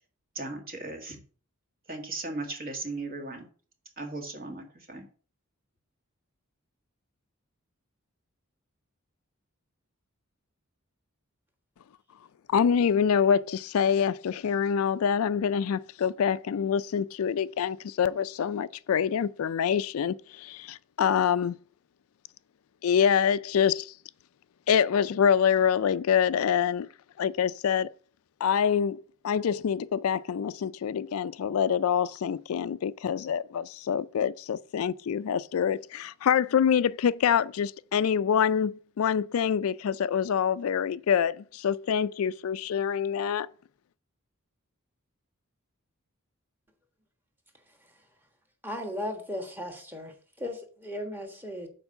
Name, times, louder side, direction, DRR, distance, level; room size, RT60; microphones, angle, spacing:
voice 1, 0.4-1.2 1.9-3.5 4.0-5.1, right 2 dB, 45° right, 1.9 m, -37 dB
voice 2, 12.5-21.6 22.8-23.9 24.7-26.9 27.2-27.9 28.4-43.5, left 7 dB, 80° left, 0.4 m, -26 dB
voice 3, 48.6-51.7, left 1 dB, 10° right, 1.5 m, -36 dB
7.0 x 4.5 x 6.7 m
head